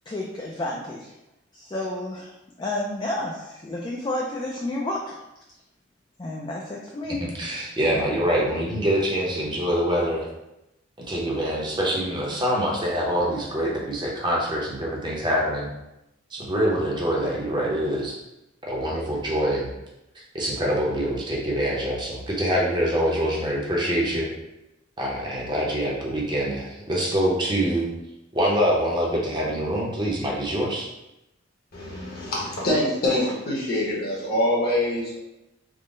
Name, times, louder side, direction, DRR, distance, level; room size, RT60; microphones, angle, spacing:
voice 1, 0.1-1.1 1.5-2.3 2.6-5.2 6.2-7.3, left 1 dB, 20° left, -2 dB, 0.3 m, -30 dB
voice 2, 7.2-10.3 11.0-15.7 16.3-18.1 18.7-19.7 20.3-24.3 25.0-27.9 28.3-30.9, equal, 20° right, -3 dB, 0.7 m, -25 dB
voice 3, 31.7-35.2, left 1 dB, 50° left, -4 dB, 1.0 m, -25 dB
3.6 x 2.1 x 3.7 m, 0.90 s
head